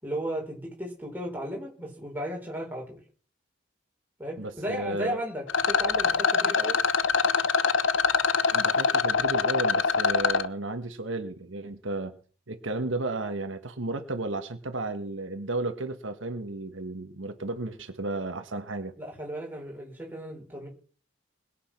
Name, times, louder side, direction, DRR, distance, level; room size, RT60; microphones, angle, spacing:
voice 1, 0.0-3.0 4.2-6.8 19.0-20.7, right 1 dB, 10° right, -1 dB, 5.2 m, -35 dB
voice 2, 4.4-5.2 8.5-12.2 12.5-19.0, right 2 dB, 90° right, 7 dB, 1.5 m, -33 dB
Rattle, 5.5-10.5, left 5 dB, 85° left, 0.7 m, -24 dB
20.5 x 8.3 x 5.9 m, 0.43 s
head